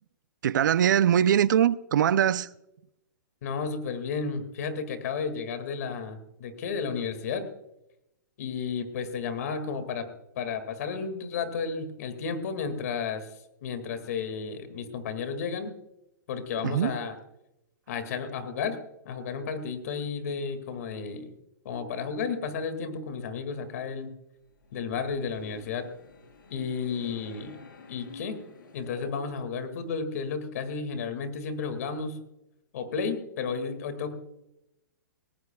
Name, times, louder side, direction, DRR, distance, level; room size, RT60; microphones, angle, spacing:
voice 1, 0.4-2.5 16.6-16.9, right 9 dB, 70° right, 0.6 m, -22 dB
voice 2, 3.4-7.4 8.4-10.1 10.3-13.3 13.6-15.7 16.3-17.1 17.9-18.8 19.1-21.3 21.6-24.1 24.7-25.9 26.5-27.6 27.9-28.4 28.7-32.2 32.7-34.1, left 5 dB, 50° left, 2.1 m, -32 dB
sound 1, 24.4-29.7, left 4 dB, 90° left, 3.9 m, -49 dB
19.0 x 18.0 x 2.3 m
hypercardioid pair, 165°, 11 cm